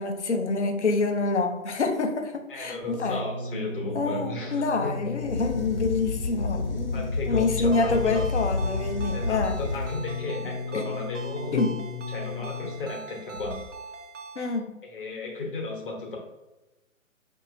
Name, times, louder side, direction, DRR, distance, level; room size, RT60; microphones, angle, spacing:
voice 1, 0.0-3.2 3.9-9.6 10.4-10.9 11.5-11.8 14.4-14.8, left 3 dB, 55° left, 5 dB, 0.7 m, -27 dB
voice 2, 2.5-4.9 6.9-8.3 9.1-11.5 12.1-13.6 14.8-16.2, left 2 dB, 40° left, -1 dB, 1.1 m, -35 dB
sound 1, 2.8-12.9 13.7-13.8, left 3 dB, 10° left, 0.5 m, -35 dB
sound 2, 5.2-10.2 13.3-13.7, left 3 dB, 85° left, 1.0 m, -31 dB
Ringtone, 7.7-14.6, right 4 dB, 60° right, 0.7 m, -42 dB
5.6 x 2.7 x 2.6 m, 1.0 s
figure-of-eight pair, 135°, 41 cm